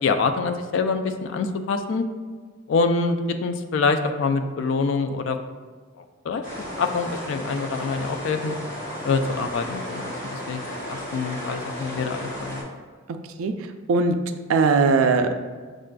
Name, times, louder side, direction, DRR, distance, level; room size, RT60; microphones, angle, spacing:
voice 1, 0.0-2.0 2.7-5.4 6.3-6.4 6.8-8.5 9.0-10.0 10.3-12.6, left 4 dB, 60° left, 7 dB, 0.3 m, -25 dB
sound 1, 6.4-12.6, left 1 dB, 35° left, 1.1 m, -34 dB
voice 2, 13.4-15.4, right 4 dB, 75° right, 8 dB, 0.3 m, -21 dB
6.4 x 2.4 x 2.2 m, 1.5 s
head